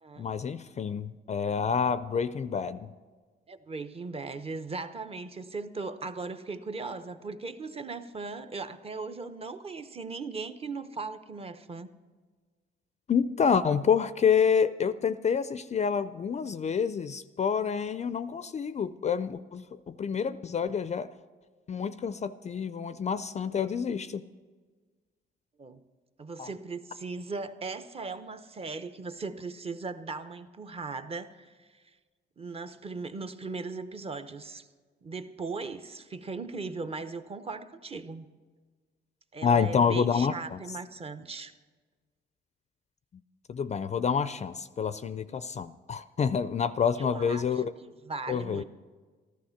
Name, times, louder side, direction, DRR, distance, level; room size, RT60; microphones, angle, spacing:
voice 1, 0.2-2.9 13.1-21.1 21.7-24.2 26.4-26.5 39.4-40.6 43.5-47.7 48.3-48.6, left 6 dB, 35° left, 14 dB, 0.4 m, -28 dB
voice 2, 3.5-11.9 25.6-25.8 26.2-31.8 32.4-34.7 35.0-38.3 39.3-41.5 47.0-47.6 48.1-48.6, right 4 dB, 30° right, 10 dB, 0.8 m, -38 dB
14.0 x 11.5 x 5.8 m, 1.4 s
cardioid pair, 90°, 20 cm